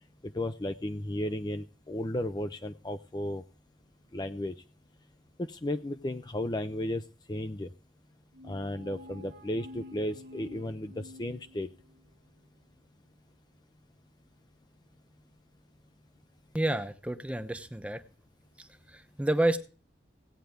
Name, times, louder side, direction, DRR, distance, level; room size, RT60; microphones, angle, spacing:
voice 1, 0.2-3.4 4.1-4.5 5.4-7.0 7.3-7.7 8.4-11.7, left 1 dB, 25° left, 9 dB, 0.5 m, -34 dB
sound 1, 8.3-12.1, left 1 dB, 65° right, 1.1 m, -50 dB
voice 2, 16.5-18.0 18.6-19.6, right 1 dB, 5° right, 10 dB, 0.8 m, -30 dB
16.5 x 9.1 x 3.3 m, 0.37 s
head